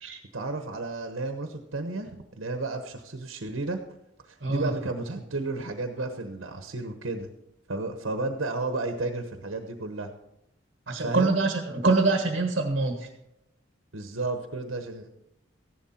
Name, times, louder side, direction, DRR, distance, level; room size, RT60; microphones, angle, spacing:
voice 1, 0.3-3.8 4.2-7.3 7.7-10.1 11.0-11.4 13.9-15.1, right 2 dB, 75° right, 6 dB, 1.1 m, -32 dB
voice 2, 4.4-4.7 10.9-13.1, right 3 dB, 50° right, 4 dB, 1.4 m, -25 dB
15.0 x 11.5 x 4.3 m, 0.86 s
head